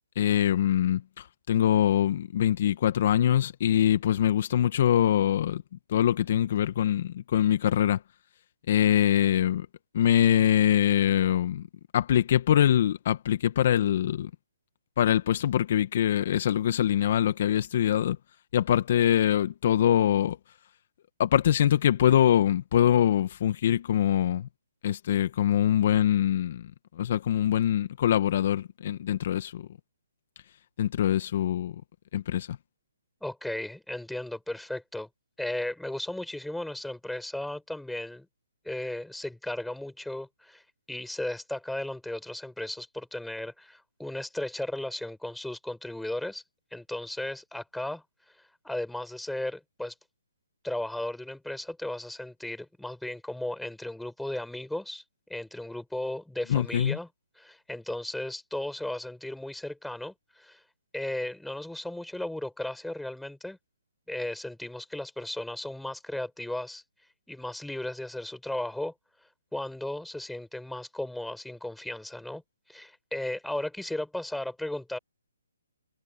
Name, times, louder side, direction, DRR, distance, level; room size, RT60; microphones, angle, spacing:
voice 1, 0.2-5.6 5.9-8.0 8.7-9.7 9.9-11.6 11.9-14.3 15.0-18.2 18.5-20.4 21.2-24.5 24.8-26.7 27.0-29.7 30.8-31.7 32.1-32.6 56.5-57.0, left 10 dB, 45° left, 1.2 m, -23 dB
voice 2, 33.2-35.1 35.4-38.3 38.6-40.6 40.9-46.4 46.7-48.0 48.6-49.9 50.6-55.0 55.3-57.1 57.4-60.6 60.9-63.6 64.1-66.8 67.3-68.9 69.5-72.4 72.7-75.0, left 1 dB, ahead, 6.8 m, -35 dB
hypercardioid pair, 145°, 0 cm